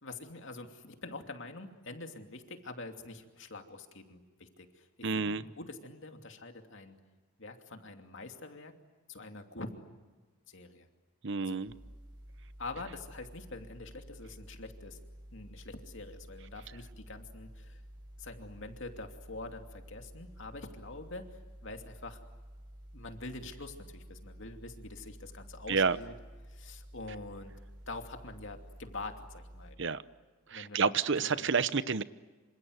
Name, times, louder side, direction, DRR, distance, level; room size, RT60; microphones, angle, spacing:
voice 1, 0.0-7.0 7.4-8.8 9.1-9.9 10.5-10.9 11.4-11.6 12.6-15.0 15.3-17.8 18.2-22.2 22.9-26.1 26.5-27.6 27.9-29.8 30.5-31.0 31.3-31.7, left 2 dB, 60° left, 5 dB, 2.7 m, -45 dB
voice 2, 5.0-5.4 11.2-11.7 25.7-26.0 29.8-30.0 30.5-32.0, right 5 dB, 55° right, 15 dB, 0.8 m, -29 dB
sound 1, 11.7-29.8, equal, 20° right, 7.8 m, -51 dB
27.5 x 26.5 x 8.0 m, 1.3 s
head